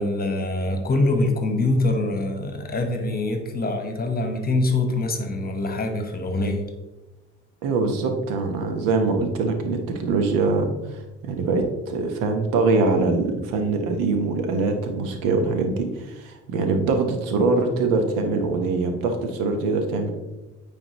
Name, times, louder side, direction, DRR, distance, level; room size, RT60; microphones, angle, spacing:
voice 1, 0.0-6.6, left 2 dB, 25° left, 5 dB, 1.3 m, -24 dB
voice 2, 7.6-20.1, right 3 dB, 70° right, 5 dB, 1.1 m, -23 dB
8.9 x 3.6 x 3.0 m, 1.1 s
hypercardioid pair, 60°, 34 cm